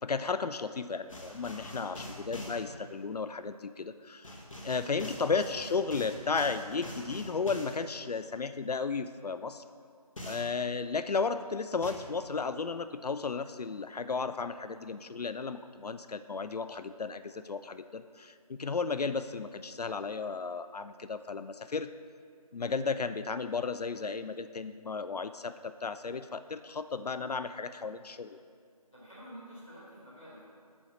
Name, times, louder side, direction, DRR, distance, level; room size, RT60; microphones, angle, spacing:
voice 1, 0.0-4.4 4.6-9.6 10.2-21.9 22.5-28.4, left 4 dB, 80° left, 11 dB, 0.4 m, -34 dB
sound 1, 1.1-2.6 4.2-7.8 10.2-10.6 11.8-11.9, left 1 dB, 55° left, 1.3 m, -44 dB
voice 2, 1.2-2.0 4.5-5.2 28.9-30.4, equal, 5° left, -15 dB, 0.8 m, -50 dB
8.5 x 4.5 x 6.1 m, 2.2 s
figure-of-eight pair, 165°, 20 cm